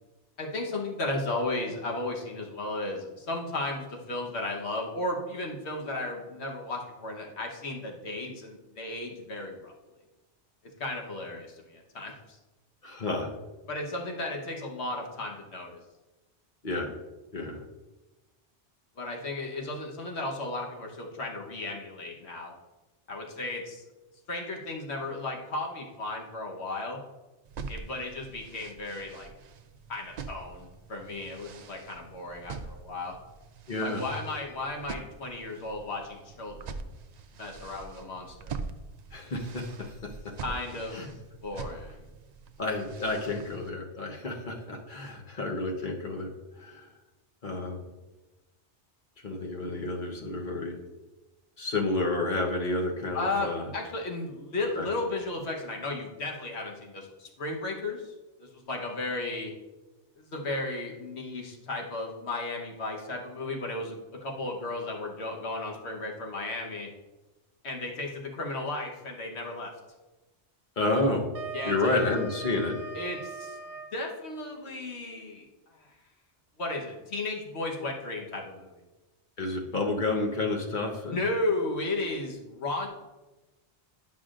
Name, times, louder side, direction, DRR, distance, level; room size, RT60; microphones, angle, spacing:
voice 1, 0.4-9.7 10.8-12.4 13.7-15.8 19.0-22.5 23.1-23.8 24.3-27.0 27.7-29.3 29.9-33.2 33.8-36.9 37.3-38.5 40.4-41.0 41.4-42.1 53.1-58.1 58.4-59.5 60.3-66.9 67.6-69.7 71.5-72.1 72.9-73.6 73.9-75.4 76.6-78.7 81.1-82.9, left 2 dB, 70° left, 0 dB, 1.4 m, -34 dB
voice 2, 12.8-13.3 16.6-16.9 17.3-17.6 33.7-34.1 39.1-40.3 40.9-41.2 42.6-46.3 46.5-46.9 47.4-47.9 49.2-50.8 51.6-53.7 54.8-54.9 70.8-71.3 71.6-72.8 79.4-81.2, left 2 dB, 45° left, 1 dB, 1.2 m, -30 dB
sound 1, 27.4-43.7, right 4 dB, 60° right, 0.4 m, -44 dB
Wind instrument woodwind instrument, 70.9-74.0, right 5 dB, 85° right, 0.9 m, -41 dB
11.0 x 5.7 x 2.5 m, 1.1 s
omnidirectional pair, 1.2 m